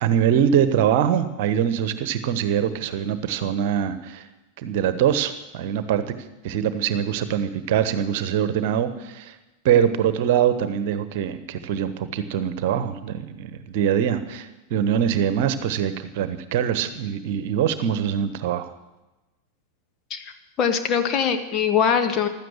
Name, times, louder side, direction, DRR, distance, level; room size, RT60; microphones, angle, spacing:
voice 1, 0.0-4.3 4.6-6.1 6.4-9.4 9.6-18.7, right 9 dB, 50° right, 12 dB, 1.2 m, -23 dB
voice 2, 20.6-22.3, left 7 dB, 30° left, 7 dB, 1.6 m, -22 dB
15.5 x 12.5 x 6.5 m, 1.0 s
figure-of-eight pair, 90°, 0 cm